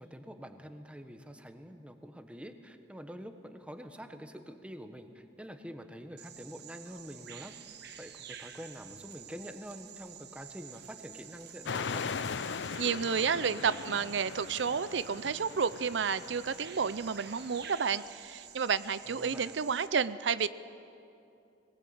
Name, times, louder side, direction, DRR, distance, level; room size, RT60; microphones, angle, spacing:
voice 1, 0.0-7.5 8.0-12.2 19.1-19.6, equal, 5° right, 7 dB, 1.2 m, -46 dB
Bird vocalization bird call bird song, 6.2-19.9, right 9 dB, 65° right, 1.2 m, -50 dB
sound 1, 11.7-17.7, left 5 dB, 75° left, 0.5 m, -40 dB
voice 2, 12.8-20.5, right 6 dB, 85° right, 15 dB, 0.6 m, -31 dB
20.5 x 19.5 x 8.8 m, 2.6 s
head